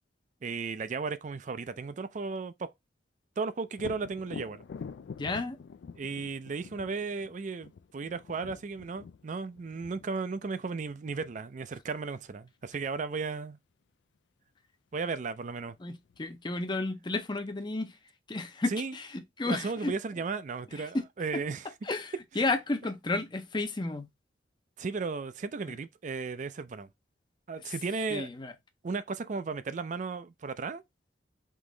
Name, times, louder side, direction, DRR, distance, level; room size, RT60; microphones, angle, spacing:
voice 1, 0.4-2.7 3.4-4.6 6.0-13.6 14.9-15.8 18.7-19.0 19.5-21.7 24.8-26.9 27.5-28.3 28.8-30.8, right 4 dB, 40° right, 0.4 m, -35 dB
Thunder, 3.7-11.4 15.1-15.2 15.6-16.5, left 5 dB, 70° left, 0.3 m, -47 dB
voice 2, 5.2-5.6 15.8-18.0 18.3-19.9 20.9-21.0 21.3-21.4 21.8-24.1 28.1-28.5, left 2 dB, 25° left, 0.6 m, -32 dB
3.8 x 3.0 x 3.7 m
head